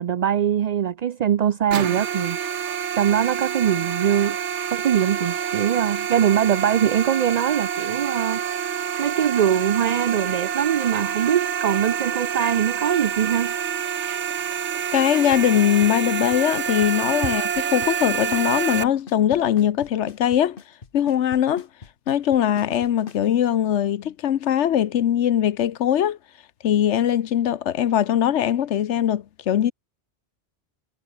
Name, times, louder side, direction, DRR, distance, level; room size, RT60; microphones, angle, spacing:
voice 1, 0.0-2.4 3.0-4.4 4.7-13.6, right 9 dB, 55° right, 0.5 m, -22 dB
sound 1, 1.7-18.8, right 8 dB, 80° right, 1.3 m, -27 dB
voice 2, 14.9-20.6 20.9-21.7 22.1-26.2 26.6-29.7, left 10 dB, 85° left, 1.1 m, -21 dB
Drum kit / Snare drum / Bass drum, 15.3-23.3, left 5 dB, 50° left, 1.6 m, -41 dB
omnidirectional pair, 1.2 m